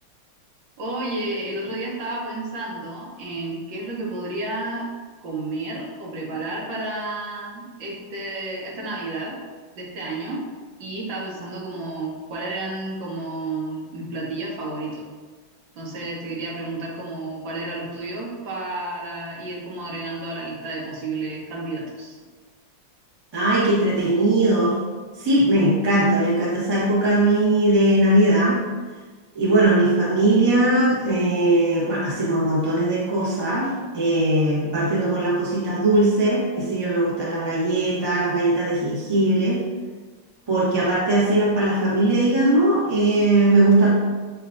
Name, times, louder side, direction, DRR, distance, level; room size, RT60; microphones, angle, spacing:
voice 1, 0.8-4.9 5.2-9.4 9.7-10.4 10.8-15.0 15.7-22.2, right 2 dB, 65° right, -3 dB, 1.5 m, -31 dB
voice 2, 23.3-24.8 25.2-28.6 29.3-39.6 40.5-43.9, right 1 dB, 35° right, -7 dB, 0.4 m, -19 dB
6.9 x 2.4 x 2.5 m, 1.4 s
omnidirectional pair, 2.4 m